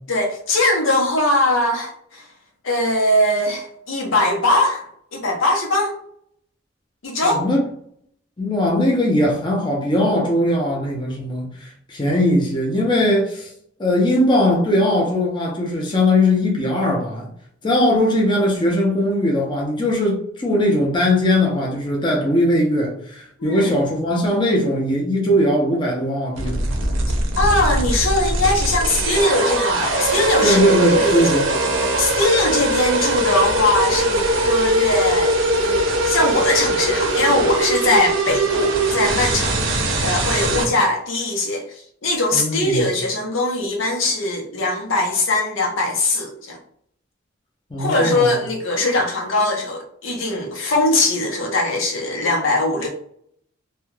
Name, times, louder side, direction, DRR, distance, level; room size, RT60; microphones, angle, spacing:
voice 1, 0.1-2.2 2.6-4.8 5.1-6.0 7.0-7.4 23.4-23.7 27.4-31.2 32.0-41.6 42.0-46.6 47.8-52.9, left 2 dB, 85° left, 0.7 m, -21 dB
voice 2, 7.2-7.6 8.4-13.5 13.8-17.3 17.6-26.6 30.4-31.5 39.8-40.0 42.3-42.8 47.7-48.3, left 1 dB, 25° left, 0.6 m, -19 dB
sound 1, 26.4-40.6, right 2 dB, 75° right, 0.6 m, -21 dB
2.3 x 2.2 x 3.1 m
head